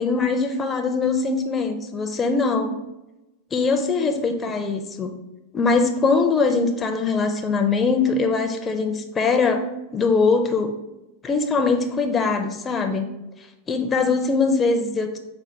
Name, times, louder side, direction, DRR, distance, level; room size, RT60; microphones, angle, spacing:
voice 1, 0.0-2.8 3.5-5.2 5.5-9.6 9.9-10.7 11.2-13.1 13.7-15.2, left 4 dB, 25° left, 5 dB, 0.4 m, -22 dB
4.2 x 2.2 x 4.5 m, 0.96 s
hypercardioid pair, 110°, 0 cm